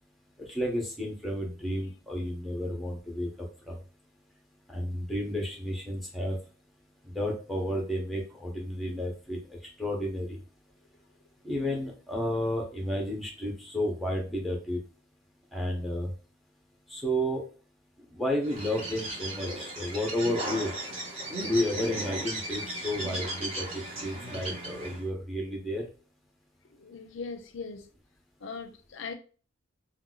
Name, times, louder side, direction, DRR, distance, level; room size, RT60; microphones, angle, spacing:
voice 1, 0.5-3.8 4.7-6.4 7.0-10.4 11.4-14.8 15.5-16.1 16.9-17.4 18.1-20.7 21.4-25.9, equal, ahead, 0.7 m, -32 dB
Bird, 18.4-25.1, right 1 dB, 30° right, 0.9 m, -36 dB
voice 2, 26.7-27.9 28.4-29.1, left 4 dB, 65° left, 0.5 m, -40 dB
2.6 x 2.2 x 3.8 m
head